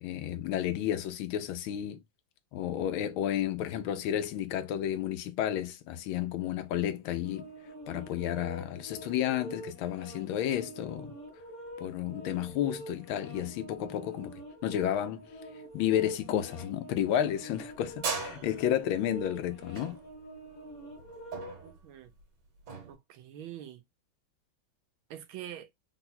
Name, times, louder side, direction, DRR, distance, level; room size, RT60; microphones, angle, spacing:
voice 1, 0.0-2.0 2.5-7.5 7.9-11.1 11.8-15.3 15.7-20.0, left 11 dB, 80° left, 1.4 m, -31 dB
sound 1, 7.2-21.7, right 1 dB, 35° left, 0.9 m, -46 dB
sound 2, 17.5-22.9, right 5 dB, 60° right, 1.7 m, -39 dB
voice 2, 21.6-22.1 22.9-23.8 25.1-25.7, right 11 dB, 80° right, 1.5 m, -45 dB
3.9 x 2.2 x 4.2 m
omnidirectional pair, 2.2 m